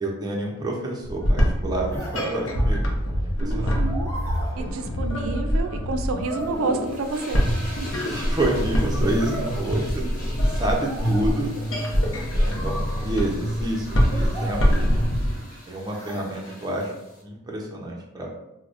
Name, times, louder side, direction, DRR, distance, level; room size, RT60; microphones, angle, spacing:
voice 1, 0.0-2.9 3.2-3.8 8.0-10.0 10.6-11.5 12.3-14.9 15.7-16.9 17.2-18.4, right 1 dB, 20° right, -1 dB, 0.5 m, -28 dB
sound 1, 1.0-15.4, equal, 60° left, 0.6 m, -24 dB
sound 2, 1.9-3.1 3.8-5.3 6.0-7.5 8.8-10.4 10.8-11.8 12.5-13.4 14.2-15.4 15.9-16.3, right 1 dB, 10° left, 0.8 m, -38 dB
voice 2, 3.4-4.1 4.6-7.4 7.8-7.9, right 3 dB, 75° right, 7 dB, 0.4 m, -29 dB
sound 3, 6.2-17.2, equal, 45° left, 1.0 m, -40 dB
4.6 x 2.1 x 2.4 m, 0.90 s
head